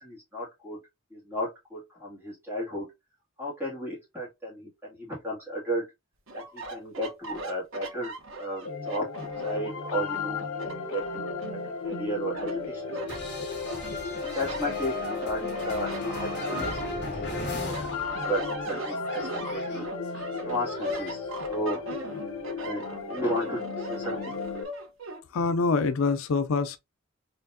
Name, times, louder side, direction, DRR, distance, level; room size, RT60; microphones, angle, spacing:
voice 1, 0.0-0.8 1.1-2.9 3.4-5.9 6.3-9.1 9.4-10.4 10.7-13.1 14.3-17.2 17.5-19.8 20.4-21.8 22.6-22.8 23.1-24.4, equal, 10° right, 2.1 m, -34 dB
sound 1, 6.3-9.7 10.2-11.9 12.3-13.2 13.7-17.3 17.6-25.2, right 1 dB, 65° right, 0.8 m, -39 dB
sound 2, 8.6-24.6, left 4 dB, 85° left, 1.2 m, -35 dB
sound 3, 13.1-18.5 18.8-21.1, left 1 dB, 50° left, 1.8 m, -37 dB
voice 2, 25.3-26.8, left 4 dB, 70° left, 0.4 m, -25 dB
4.3 x 3.3 x 2.6 m
head